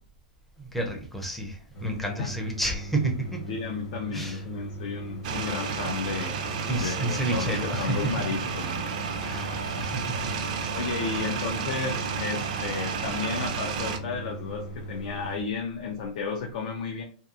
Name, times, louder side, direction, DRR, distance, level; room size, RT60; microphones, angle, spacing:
voice 1, 0.6-3.5 4.1-4.4 6.7-8.0 9.2-10.2 11.1-11.3, right 1 dB, 5° left, 2 dB, 0.5 m, -31 dB
sound 1, 1.7-15.4, right 1 dB, 30° left, 0.8 m, -39 dB
voice 2, 3.5-6.3 6.7-8.9 10.7-17.0, left 5 dB, 60° left, 2 dB, 0.4 m, -33 dB
sound 2, 5.2-14.0, right 6 dB, 55° right, 0.4 m, -32 dB
2.7 x 2.3 x 2.4 m, 0.43 s
hypercardioid pair, 135°, 5 cm